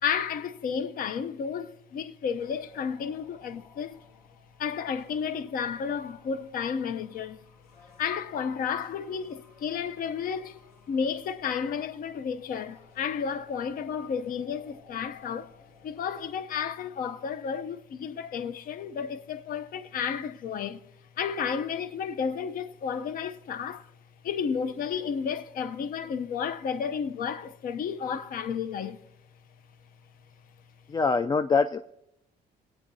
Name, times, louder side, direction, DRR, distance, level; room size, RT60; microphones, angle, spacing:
voice 1, 0.0-4.0 4.6-7.4 8.0-15.5 15.8-20.8 21.2-23.9 24.2-29.0, left 7 dB, 55° left, 0.7 m, -32 dB
sound 1, 2.4-16.4, left 5 dB, 80° left, 2.4 m, -58 dB
voice 2, 30.9-31.8, left 4 dB, 25° left, 0.3 m, -24 dB
22.5 x 8.9 x 2.7 m
cardioid pair, 110°, 17 cm